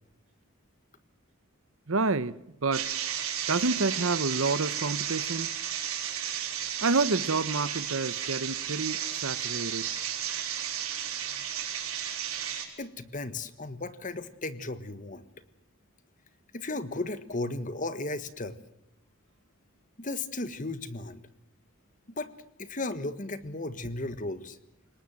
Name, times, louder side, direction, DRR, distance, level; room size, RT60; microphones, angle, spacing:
voice 1, 1.9-2.3 2.6-2.9 3.5-5.5 6.8-9.9, right 3 dB, 75° right, 1.0 m, -28 dB
sound 1, 2.7-12.7, right 9 dB, 90° right, 5.5 m, -33 dB
voice 2, 12.8-15.2 16.5-18.6 20.0-21.2 22.2-22.3 22.6-24.6, left 2 dB, 40° left, 1.5 m, -35 dB
29.0 x 19.0 x 7.7 m
head